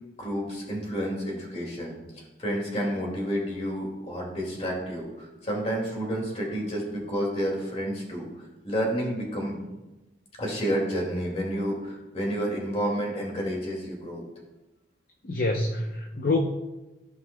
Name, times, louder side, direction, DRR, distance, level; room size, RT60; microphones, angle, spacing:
voice 1, 0.2-2.0 2.4-8.3 8.6-9.6 10.4-14.2, equal, 35° left, -1 dB, 2.1 m, -30 dB
voice 2, 15.2-16.4, left 2 dB, 55° left, 1 dB, 0.6 m, -26 dB
14.5 x 5.4 x 2.2 m, 1.1 s
head